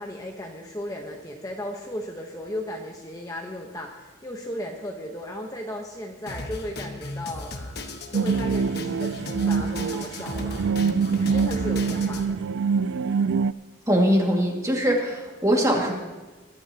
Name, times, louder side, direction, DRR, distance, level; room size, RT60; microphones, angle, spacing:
voice 1, 0.0-7.6 8.1-10.7 11.2-12.5, left 1 dB, 20° left, 1 dB, 1.0 m, -35 dB
Drum kit, 6.3-12.2, left 2 dB, 55° left, 1.3 m, -36 dB
sound 1, 8.1-13.5, right 5 dB, 60° right, 0.3 m, -25 dB
voice 2, 13.9-15.9, equal, 15° right, 0 dB, 2.1 m, -22 dB
21.5 x 12.0 x 2.9 m, 1.3 s
head